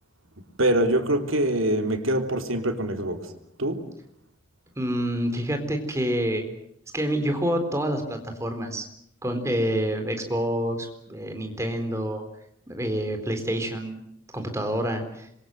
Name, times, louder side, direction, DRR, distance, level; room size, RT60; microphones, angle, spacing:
voice 1, 0.6-3.3 3.6-3.8, right 1 dB, 90° right, 3.4 m, -24 dB
voice 2, 4.8-6.4 6.9-8.9 9.2-12.2 12.7-14.0 14.3-15.3, equal, 15° right, 4.0 m, -27 dB
26.5 x 23.5 x 7.8 m
head